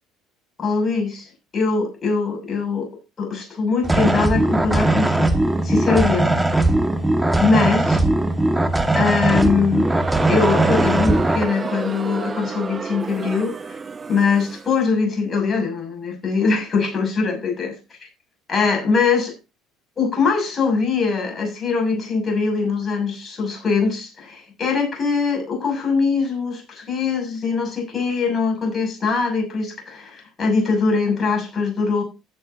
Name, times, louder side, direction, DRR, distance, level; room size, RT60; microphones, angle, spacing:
voice 1, 0.6-2.9 3.2-5.3 5.6-6.3 7.4-8.0 8.9-9.9 10.3-13.8 14.1-18.1 18.5-19.3 20.0-32.0, left 4 dB, 35° left, 6.7 m, -22 dB
sound 1, 3.8-11.4, right 2 dB, 10° right, 1.9 m, -19 dB
Crowd, 9.7-14.8, right 4 dB, 30° right, 1.2 m, -29 dB
16.0 x 7.6 x 2.8 m
hypercardioid pair, 70°, 0 cm